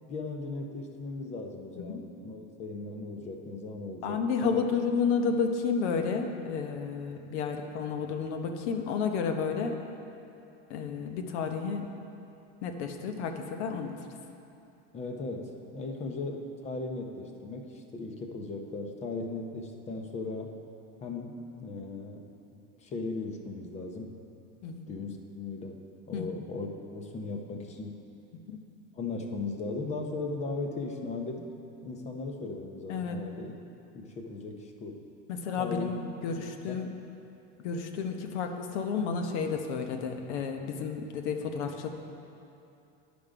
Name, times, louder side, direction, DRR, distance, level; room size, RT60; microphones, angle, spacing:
voice 1, 0.1-4.6 14.9-20.5 21.0-22.3 22.5-24.1 24.9-25.8 26.1-28.0 28.9-31.5 31.8-33.5 33.9-35.0 35.6-35.9 36.7-36.8, left 3 dB, 20° left, 3 dB, 0.6 m, -37 dB
voice 2, 4.0-9.8 10.7-11.8 12.6-14.0 24.6-24.8 26.1-26.3 28.5-28.6 32.9-33.2 35.3-36.9 37.6-41.9, left 5 dB, 85° left, 5 dB, 0.9 m, -31 dB
11.0 x 5.2 x 5.0 m, 2.7 s
supercardioid pair, 160°, 34 cm